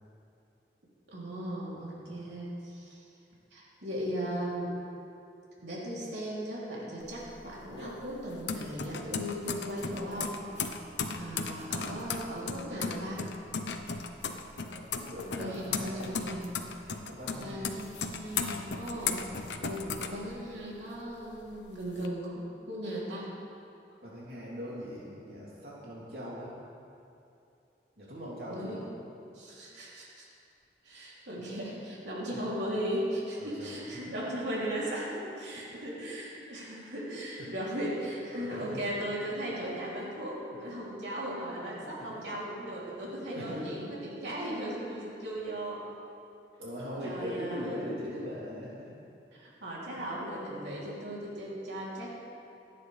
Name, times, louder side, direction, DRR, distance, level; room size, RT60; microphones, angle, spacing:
voice 1, 1.1-3.0 3.5-4.7 5.6-10.4 11.1-13.2 15.4-16.5 17.4-19.2 19.6-23.3 28.5-28.9 29.3-30.3 30.8-45.8 47.0-47.7 49.3-52.1, equal, 85° right, -6 dB, 3.2 m, -37 dB
voice 2, 2.0-2.3 11.7-12.0 14.6-16.3 17.1-17.7 24.0-26.5 28.0-28.9 33.4-34.2 35.7-35.8 36.7-36.9 37.4-37.5 38.3-38.8 39.4-39.6 41.6-41.7 42.0-42.2 43.3-43.7 44.6-45.1 46.6-48.9 50.0-50.1 50.7-50.8, equal, 60° right, -7 dB, 3.2 m, -41 dB
sound 1, 7.0-20.8 21.2-22.1, left 5 dB, 85° left, 0.9 m, -36 dB
26.5 x 9.6 x 3.4 m, 2.7 s
head